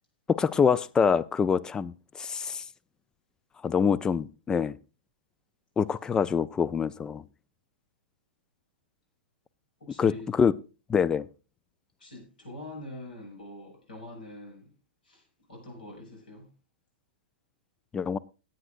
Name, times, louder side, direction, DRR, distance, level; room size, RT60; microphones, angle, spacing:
voice 1, 0.3-2.6 3.6-4.8 5.8-7.2 10.0-10.5 10.9-11.3 17.9-18.2, left 6 dB, 15° left, 0.4 m, -25 dB
voice 2, 9.8-10.3 12.0-14.7 15.0-15.2 15.5-16.5, left 1 dB, 70° left, 6.4 m, -44 dB
18.5 x 8.8 x 2.5 m
figure-of-eight pair, 110°, 5 cm